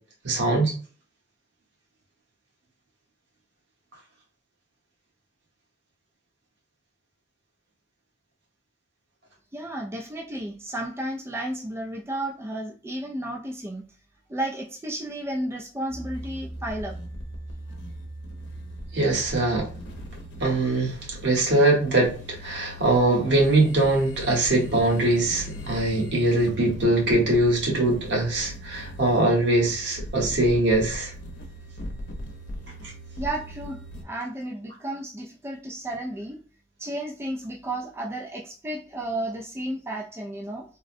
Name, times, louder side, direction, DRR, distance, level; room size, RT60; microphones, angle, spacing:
voice 1, 0.2-0.7 18.9-19.7 20.4-20.9 21.2-22.1 22.4-31.1, right 2 dB, 70° right, 1.2 m, -22 dB
voice 2, 9.5-13.8 14.3-16.9 33.2-33.8 34.0-36.4 36.8-40.6, right 1 dB, 15° right, 0.4 m, -32 dB
sound 1, 15.9-34.0, equal, 85° left, 0.7 m, -39 dB
3.6 x 2.1 x 2.5 m
head